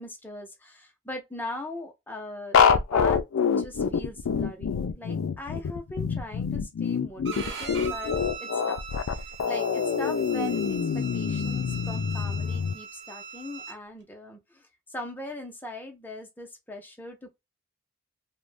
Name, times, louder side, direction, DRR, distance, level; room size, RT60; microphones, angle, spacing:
voice 1, 0.0-8.8 9.1-17.4, left 1 dB, 10° left, 0.6 m, -40 dB
sound 1, 2.5-12.7, left 6 dB, 85° left, 0.4 m, -26 dB
Bowed string instrument, 7.2-13.8, right 6 dB, 60° right, 0.8 m, -40 dB
2.5 x 2.1 x 3.2 m
head